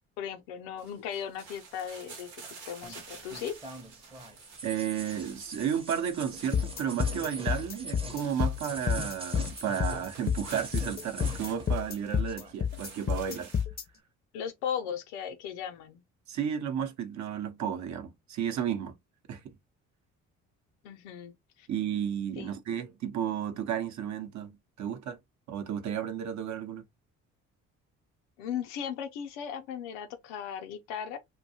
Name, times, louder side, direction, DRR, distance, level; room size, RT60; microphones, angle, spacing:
voice 1, 0.2-2.3 2.7-3.5 14.3-16.0 20.8-21.7 22.4-22.5 28.4-31.2, left 8 dB, 90° left, 0.5 m, -37 dB
sound 1, 0.8-13.6, right 5 dB, 90° right, 0.9 m, -51 dB
sound 2, 2.8-11.9 12.2-13.0, right 2 dB, 15° right, 0.7 m, -43 dB
voice 2, 4.6-13.5 16.3-19.0 19.3-19.5 21.7-25.2 25.5-26.8, right 8 dB, 55° right, 0.7 m, -33 dB
sound 3, 6.5-13.8, left 7 dB, 30° left, 0.5 m, -29 dB
2.6 x 2.2 x 2.7 m
hypercardioid pair, 60°, 34 cm